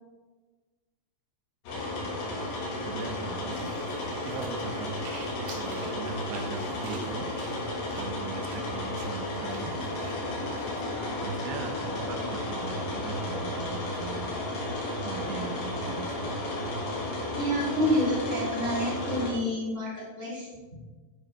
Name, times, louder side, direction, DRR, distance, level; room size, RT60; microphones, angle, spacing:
sound 1, 1.7-19.3, left 1 dB, 75° left, 3.9 m, -33 dB
voice 1, 2.8-3.8 4.2-5.0 5.6-7.3 8.0-9.8 11.2-14.3 15.0-16.3, right 6 dB, 75° right, 6 dB, 2.4 m, -39 dB
sound 2, 3.5-10.7, right 3 dB, 60° right, 1.9 m, -45 dB
voice 2, 17.4-20.5, equal, 25° left, -7 dB, 1.7 m, -28 dB
12.0 x 4.7 x 3.4 m, 1.3 s
omnidirectional pair, 5.0 m